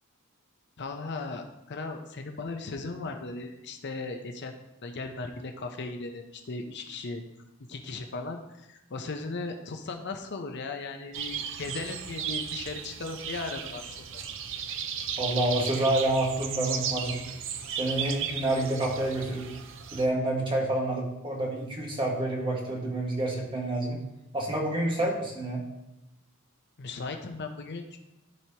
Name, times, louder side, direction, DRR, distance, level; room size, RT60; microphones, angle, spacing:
voice 1, 0.8-4.5 4.8-7.2 7.7-14.2 26.8-28.0, left 3 dB, 55° left, 5 dB, 0.7 m, -37 dB
sound 1, 11.1-20.1, right 8 dB, 60° right, 0.6 m, -35 dB
voice 2, 15.2-17.2 17.7-19.5 19.9-24.0 24.3-25.6, right 1 dB, 25° right, -2 dB, 1.7 m, -28 dB
13.5 x 4.6 x 2.9 m, 0.94 s
head